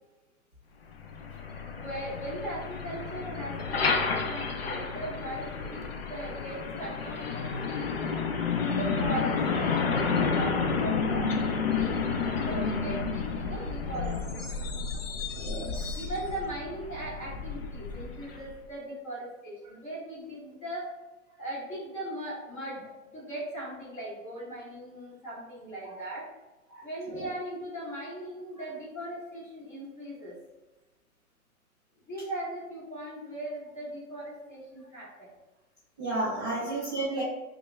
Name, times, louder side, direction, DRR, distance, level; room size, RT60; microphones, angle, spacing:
Truck, 0.9-18.6, left 5 dB, 45° left, 0.4 m, -31 dB
voice 1, 1.7-5.8 6.1-8.0 8.6-11.3 11.7-12.0 12.4-14.5 15.9-20.9 21.4-22.9 23.1-26.3 26.8-30.4 32.1-35.3 36.5-37.0, right 1 dB, 15° left, -8 dB, 1.2 m, -39 dB
voice 2, 15.3-16.0 26.7-26.8 27.1-27.3 36.0-37.2, right 2 dB, 20° right, -11 dB, 0.4 m, -32 dB
5.2 x 2.2 x 2.2 m, 1.1 s
hypercardioid pair, 150°, 43 cm